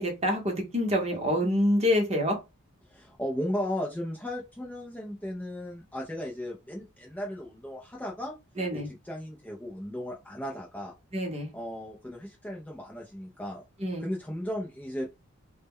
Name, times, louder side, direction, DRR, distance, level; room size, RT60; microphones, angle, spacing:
voice 1, 0.0-2.4 8.6-8.9 11.1-11.5 13.8-14.1, left 1 dB, 30° right, 2 dB, 0.7 m, -26 dB
voice 2, 2.9-8.3 8.7-10.9 11.5-13.6 14.0-15.1, equal, 5° left, -2 dB, 0.3 m, -36 dB
2.1 x 2.1 x 3.5 m, 0.25 s
head